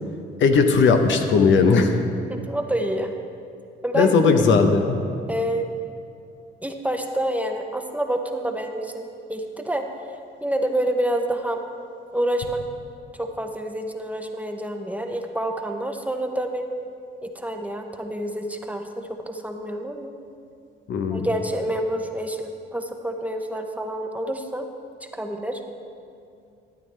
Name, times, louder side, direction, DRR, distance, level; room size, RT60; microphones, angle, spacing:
voice 1, 0.4-2.0 3.9-5.0 20.9-21.3, left 4 dB, 70° left, 5 dB, 0.9 m, -17 dB
voice 2, 2.3-3.1 3.8-4.1 5.3-5.7 6.6-9.9 10.4-11.6 12.1-12.6 13.2-16.7 17.2-20.1 21.1-24.7 25.1-25.6, right 1 dB, 5° right, 4 dB, 0.7 m, -28 dB
12.5 x 9.2 x 3.3 m, 2.5 s
cardioid pair, 90°, 20 cm